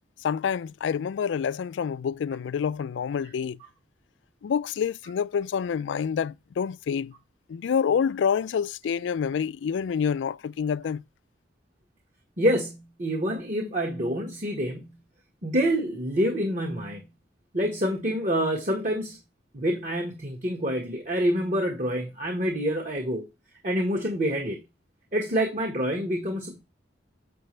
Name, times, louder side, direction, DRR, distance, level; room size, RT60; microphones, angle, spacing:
voice 1, 0.2-3.6 4.4-7.1 7.5-11.0, left 7 dB, 85° left, 0.3 m, -27 dB
voice 2, 12.4-15.0 15.4-17.0 17.5-19.2 19.5-23.3 23.6-24.6 25.1-26.6, equal, 45° right, 1.5 m, -27 dB
7.6 x 6.8 x 3.2 m
head